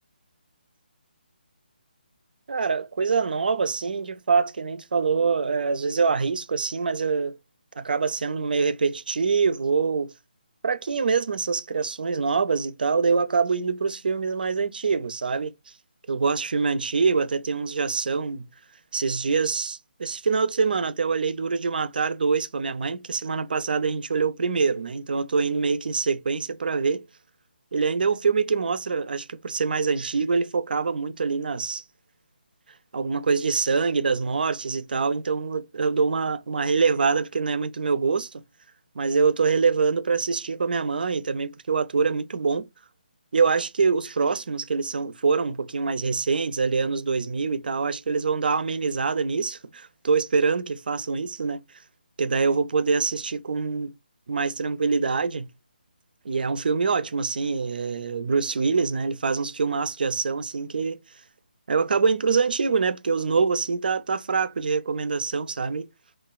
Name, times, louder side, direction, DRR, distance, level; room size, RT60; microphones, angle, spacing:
voice 1, 2.5-7.4 7.8-10.1 10.6-15.5 16.1-18.5 18.9-27.0 27.7-31.8 32.9-38.3 39.0-42.7 43.3-51.6 52.2-53.9 54.3-55.5 56.2-61.0 61.7-65.9, right 5 dB, 65° right, 0.4 m, -25 dB
3.1 x 2.2 x 2.2 m
hypercardioid pair, 165°, 5 cm